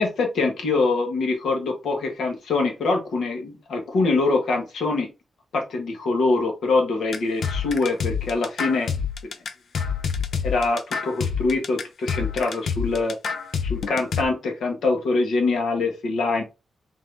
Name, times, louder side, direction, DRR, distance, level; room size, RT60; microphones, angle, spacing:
voice 1, 0.0-5.1 5.5-8.9 10.4-13.1 13.7-16.4, left 3 dB, 85° left, 2 dB, 1.2 m, -24 dB
sound 1, 7.1-14.2, left 6 dB, 60° left, 0.5 m, -27 dB
3.6 x 2.8 x 3.3 m, 0.27 s
wide cardioid pair, 175°, 0 cm